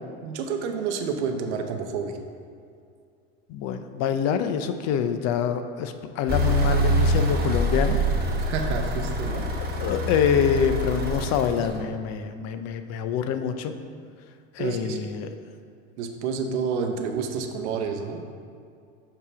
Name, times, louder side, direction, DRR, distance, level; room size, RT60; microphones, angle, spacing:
voice 1, 0.2-2.2 8.4-9.4 14.6-15.0 16.0-18.2, right 5 dB, 80° right, 5 dB, 0.8 m, -29 dB
voice 2, 3.5-8.0 9.8-13.7 14.5-15.3, left 7 dB, 50° left, 8 dB, 0.5 m, -26 dB
sound 1, 6.3-11.8, equal, 30° right, 1.1 m, -25 dB
6.8 x 2.9 x 5.7 m, 2.3 s
hypercardioid pair, 95°, 34 cm